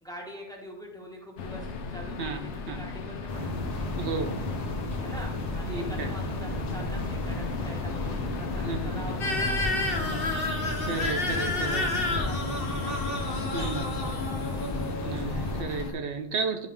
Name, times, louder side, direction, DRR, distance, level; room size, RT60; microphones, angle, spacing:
voice 1, 0.0-3.7 5.0-10.4 11.0-13.0 13.3-14.5, equal, 5° left, -2 dB, 1.3 m, -45 dB
sound 1, 1.4-15.9, left 4 dB, 80° left, 1.0 m, -37 dB
sound 2, 3.3-15.6, left 1 dB, 35° left, 1.1 m, -34 dB
voice 2, 4.0-4.4 5.7-6.1 8.6-9.0 10.9-11.8 13.5-13.8 15.0-16.7, right 4 dB, 75° right, 6 dB, 0.9 m, -32 dB
sound 3, 9.2-15.9, left 2 dB, 55° left, 1.1 m, -31 dB
10.5 x 3.7 x 3.5 m, 0.85 s
omnidirectional pair, 1.2 m